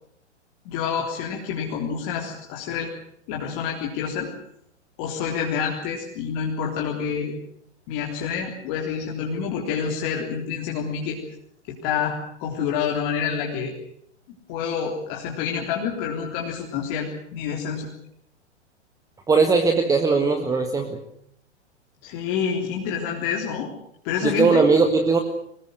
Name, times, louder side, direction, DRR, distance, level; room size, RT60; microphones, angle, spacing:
voice 1, 0.7-2.9 3.3-4.3 5.0-7.3 7.9-11.2 11.7-13.7 14.3-17.9 22.0-23.7 24.0-24.6, left 7 dB, 35° left, -1 dB, 3.7 m, -28 dB
voice 2, 19.3-21.0 24.2-25.2, right 4 dB, 10° right, 6 dB, 1.7 m, -19 dB
23.0 x 20.0 x 8.0 m, 0.71 s
figure-of-eight pair, 105°, 35 cm